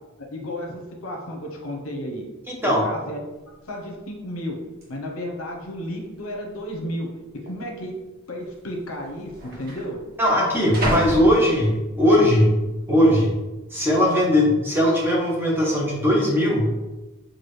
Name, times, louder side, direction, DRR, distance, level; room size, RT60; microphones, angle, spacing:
voice 1, 0.2-2.2 2.8-3.2 3.7-4.6 4.9-7.1 7.5-7.9 8.3-10.0, equal, 70° left, 1 dB, 0.8 m, -32 dB
voice 2, 2.5-2.9 10.2-12.5 12.9-13.3 13.7-16.7, equal, 10° right, -3 dB, 0.8 m, -19 dB
sound 1, 3.3-3.4 3.7-4.1 4.8-4.9 5.7-6.2 6.4-6.6 7.4-7.6 8.6-8.7 8.9-12.1 12.6-13.0, equal, 45° right, 1.0 m, -32 dB
6.0 x 2.4 x 3.2 m, 1.1 s
head